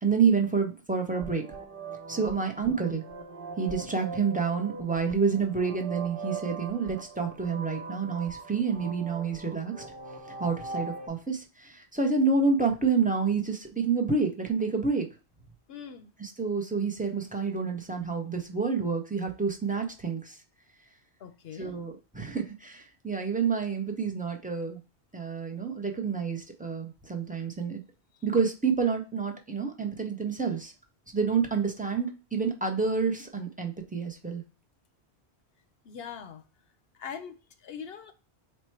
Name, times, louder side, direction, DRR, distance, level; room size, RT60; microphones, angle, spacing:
voice 1, 0.0-1.4 2.1-3.0 3.6-9.7 10.4-15.1 16.2-20.4 21.6-24.8 25.1-27.8 28.2-30.7 31.1-34.4, right 5 dB, 10° right, 0.4 m, -28 dB
sound 1, 1.1-11.1, right 4 dB, 55° right, 1.0 m, -41 dB
voice 2, 15.7-16.1 21.2-21.7 35.8-36.4 37.0-38.1, left 7 dB, 65° left, 0.8 m, -42 dB
4.3 x 2.2 x 4.3 m
omnidirectional pair, 1.1 m